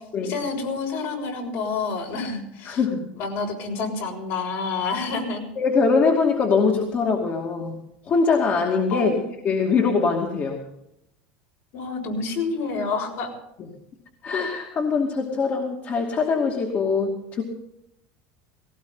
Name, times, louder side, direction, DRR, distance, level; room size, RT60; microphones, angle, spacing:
voice 1, 0.2-2.8 3.1-5.5 8.9-9.2 11.7-13.3, left 4 dB, 65° left, 1 dB, 6.3 m, -28 dB
voice 2, 2.7-3.1 5.6-7.8 8.1-9.2 9.4-10.6 14.2-17.4, left 4 dB, 40° left, 0 dB, 2.5 m, -22 dB
18.5 x 18.0 x 4.0 m, 0.80 s
supercardioid pair, 110°, 5 cm